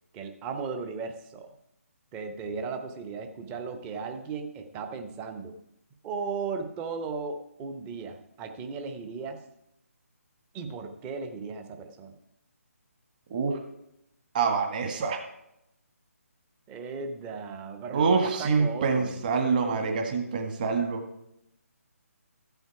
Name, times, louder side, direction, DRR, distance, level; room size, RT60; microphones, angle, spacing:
voice 1, 0.1-1.5 2.1-5.5 6.0-9.4 10.5-12.1 16.7-19.2, right 5 dB, 15° right, 6 dB, 0.9 m, -36 dB
voice 2, 14.3-15.2 17.9-21.0, right 5 dB, 35° right, 4 dB, 1.7 m, -26 dB
14.0 x 8.0 x 4.8 m, 0.80 s
figure-of-eight pair, 145°, 8 cm